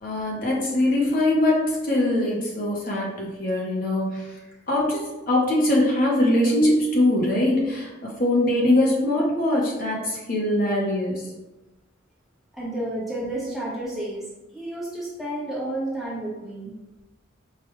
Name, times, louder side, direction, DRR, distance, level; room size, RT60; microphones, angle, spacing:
voice 1, 0.0-4.3 4.7-11.2, left 1 dB, 45° left, -4 dB, 0.8 m, -22 dB
voice 2, 12.5-14.2 14.5-16.7, right 1 dB, ahead, -8 dB, 0.9 m, -31 dB
4.8 x 2.2 x 3.0 m, 1.1 s
head